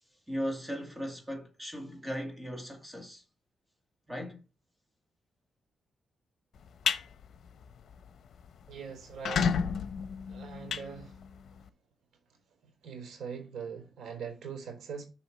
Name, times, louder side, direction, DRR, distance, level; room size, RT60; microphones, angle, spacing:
voice 1, 0.3-3.2 4.1-4.4, equal, 10° right, 2.2 m, -37 dB
sound 1, 6.6-7.0 7.5-7.7 8.1-8.2 8.4-8.5 9.0-11.6, left 6 dB, 70° left, 0.9 m, -31 dB
voice 2, 8.7-9.6 10.3-11.2 12.8-15.0, right 6 dB, 80° right, 4.1 m, -42 dB
6.9 x 5.7 x 4.4 m
cardioid pair, 110°, 0 cm